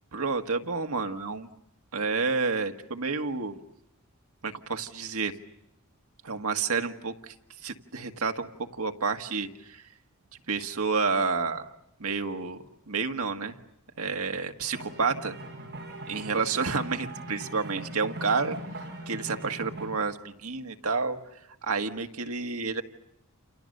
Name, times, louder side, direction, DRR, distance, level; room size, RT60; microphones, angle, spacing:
voice 1, 0.1-1.5 1.9-3.6 4.4-5.3 6.2-7.3 7.6-8.5 8.7-9.9 10.5-11.7 12.0-12.6 12.9-13.6 14.0-15.4 16.1-18.6 19.1-21.2 21.6-22.8, right 4 dB, 80° right, 5 dB, 1.7 m, -29 dB
sound 1, 14.7-19.9, right 1 dB, 50° right, 6.9 m, -40 dB
29.0 x 29.0 x 6.7 m, 0.83 s
head